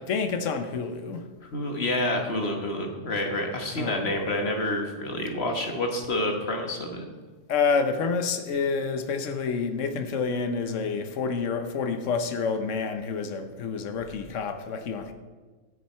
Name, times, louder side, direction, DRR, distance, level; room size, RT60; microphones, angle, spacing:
voice 1, 0.1-1.3 3.8-4.1 7.5-15.1, left 5 dB, 90° left, 8 dB, 1.2 m, -28 dB
voice 2, 1.4-7.1, left 1 dB, 60° left, 3 dB, 1.6 m, -28 dB
14.0 x 6.6 x 4.4 m, 1.4 s
omnidirectional pair, 1.2 m